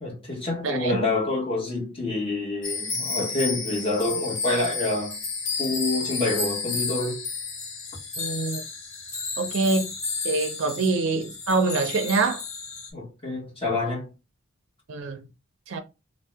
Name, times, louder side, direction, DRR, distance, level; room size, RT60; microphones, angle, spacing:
voice 1, 0.0-5.2 5.6-7.2 10.6-10.8 12.9-14.1, left 2 dB, 25° left, 1.1 m, -27 dB
voice 2, 0.6-1.0 8.2-8.6 9.4-9.9 10.2-12.4 14.9-15.2 15.7-15.8, right 3 dB, 70° right, 0.4 m, -25 dB
sound 1, 2.6-12.9, left 4 dB, 75° left, 0.9 m, -32 dB
2.6 x 2.0 x 3.3 m
head